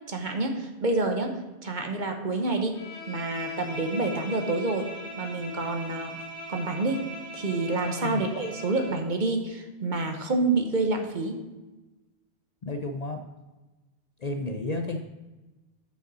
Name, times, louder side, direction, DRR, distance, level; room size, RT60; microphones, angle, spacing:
voice 1, 0.1-1.3 1.6-2.8 3.1-4.9 5.2-6.2 6.5-7.0 7.3-11.4, right 2 dB, 45° right, 4 dB, 1.0 m, -28 dB
Bowed string instrument, 2.7-9.1, equal, 80° left, 1.9 m, -40 dB
voice 2, 12.6-13.2 14.2-15.0, left 2 dB, 45° left, 4 dB, 0.6 m, -31 dB
6.7 x 5.5 x 6.1 m, 1.1 s
omnidirectional pair, 1.1 m